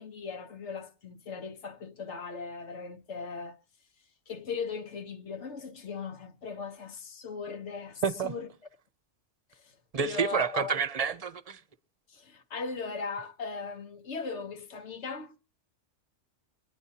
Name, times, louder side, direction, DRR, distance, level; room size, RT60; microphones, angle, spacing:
voice 1, 0.0-3.6 4.3-8.5 9.5-9.7 10.0-10.8 12.1-15.3, left 5 dB, 70° left, 1.4 m, -38 dB
voice 2, 8.0-8.3 9.9-11.6, right 6 dB, 35° right, 0.8 m, -29 dB
24.5 x 10.0 x 2.8 m
omnidirectional pair, 1.2 m